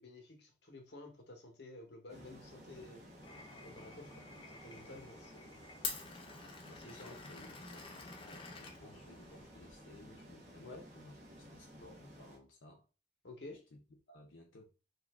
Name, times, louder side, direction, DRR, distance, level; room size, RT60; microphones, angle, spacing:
voice 1, 0.0-3.1 3.6-5.6 6.8-7.2 10.6-10.9 13.2-13.6, left 2 dB, 60° left, 0.9 m, -52 dB
sound 1, 2.1-12.4, equal, 40° right, 1.1 m, -55 dB
Glass, 3.2-9.5, left 5 dB, 25° left, 0.4 m, -48 dB
voice 2, 6.7-7.9 8.2-12.9 13.4-13.8 14.1-14.7, left 2 dB, 85° left, 0.6 m, -58 dB
2.8 x 2.5 x 3.4 m
head